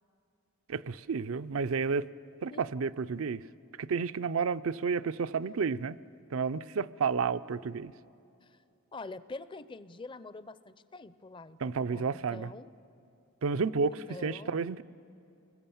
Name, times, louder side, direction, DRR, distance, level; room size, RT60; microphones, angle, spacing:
voice 1, 0.7-2.1 2.4-3.4 3.8-6.0 6.3-7.9 11.6-12.5 13.4-14.8, right 5 dB, 85° right, 13 dB, 0.5 m, -31 dB
voice 2, 8.9-12.7 13.9-14.6, left 3 dB, 25° left, 15 dB, 0.5 m, -45 dB
28.5 x 21.0 x 7.1 m, 2.7 s
head